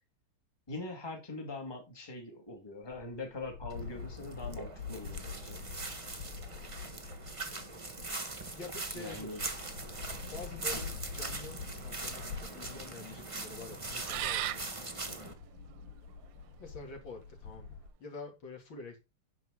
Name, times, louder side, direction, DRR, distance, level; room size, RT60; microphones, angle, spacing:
voice 1, 0.7-5.6 8.9-9.4 10.7-10.8, left 2 dB, 10° left, 1.9 m, -42 dB
sound 1, 2.8-17.9, left 5 dB, 80° left, 2.2 m, -46 dB
sound 2, 3.7-15.3, right 3 dB, 20° right, 0.8 m, -42 dB
voice 2, 8.5-9.4 10.3-14.7 16.6-19.0, left 4 dB, 60° left, 3.4 m, -47 dB
sound 3, 10.7-16.5, right 12 dB, 70° right, 1.3 m, -41 dB
9.5 x 6.5 x 3.8 m
omnidirectional pair, 2.4 m